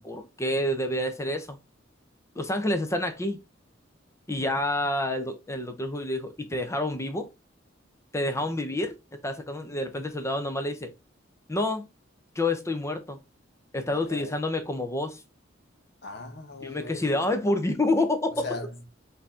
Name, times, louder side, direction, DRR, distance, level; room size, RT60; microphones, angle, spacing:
voice 1, 0.0-1.6 2.4-3.4 4.3-7.3 8.1-8.9 9.2-10.9 11.5-11.8 12.4-13.2 13.7-15.2 16.6-18.5, left 1 dB, 15° left, 0.6 m, -28 dB
voice 2, 13.9-14.4 16.0-17.3 18.3-18.9, left 3 dB, 60° left, 1.0 m, -39 dB
4.5 x 2.7 x 3.5 m
head